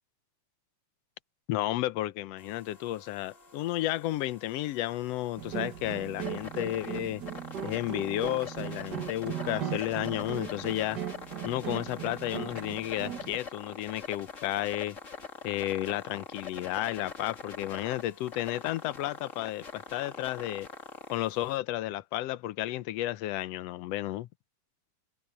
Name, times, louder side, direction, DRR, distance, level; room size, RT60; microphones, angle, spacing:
voice 1, 1.5-7.2 7.6-11.0 11.4-15.0 15.4-20.7 21.1-24.3, left 15 dB, 75° left, 1.5 m, -32 dB
sound 1, 2.4-21.6, left 5 dB, 25° left, 2.3 m, -45 dB
sound 2, 5.4-13.4, right 10 dB, 55° right, 1.2 m, -38 dB
omnidirectional pair, 3.6 m